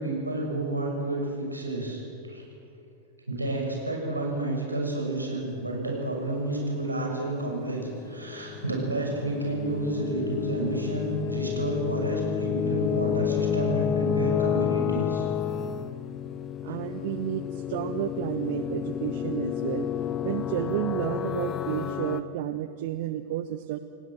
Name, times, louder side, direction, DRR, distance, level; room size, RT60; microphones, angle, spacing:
voice 1, 0.0-2.0 2.3-2.4 3.3-15.3, right 2 dB, 85° right, -1 dB, 6.8 m, -30 dB
sound 1, 7.3-22.2, left 9 dB, 30° left, 0.9 m, -30 dB
voice 2, 16.6-19.9 20.2-23.8, right 12 dB, 50° right, 10 dB, 0.9 m, -31 dB
29.0 x 18.0 x 7.8 m, 2.6 s
figure-of-eight pair, 90°, 0 cm